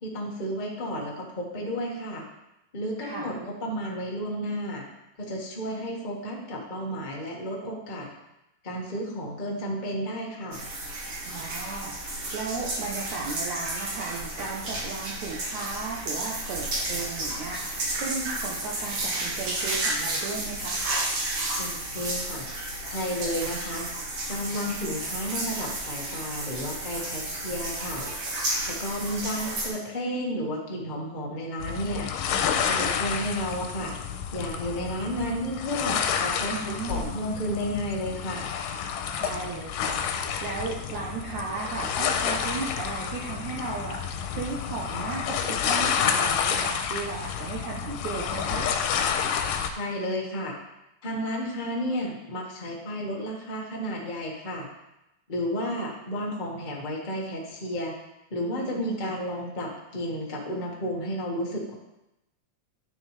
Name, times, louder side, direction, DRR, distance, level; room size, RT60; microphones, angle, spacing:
voice 1, 0.0-2.2 2.7-4.8 5.2-8.1 8.6-10.6 21.6-22.5 22.8-23.9 24.3-28.1 28.7-32.1 32.7-33.9 34.3-38.5 49.6-50.5 51.0-54.7 55.3-57.9 58.3-61.7, equal, 40° left, -3 dB, 0.6 m, -32 dB
voice 2, 3.0-3.3 11.2-12.0 12.3-20.8 36.5-37.1 39.2-40.0 40.4-44.0 44.3-48.7 58.6-59.1, right 4 dB, 70° right, -3 dB, 2.2 m, -35 dB
sound 1, 10.5-29.7, right 1 dB, 50° right, 2.3 m, -32 dB
sound 2, 31.6-49.7, left 7 dB, 85° left, 2.4 m, -29 dB
11.0 x 7.0 x 3.3 m, 0.91 s
omnidirectional pair, 3.9 m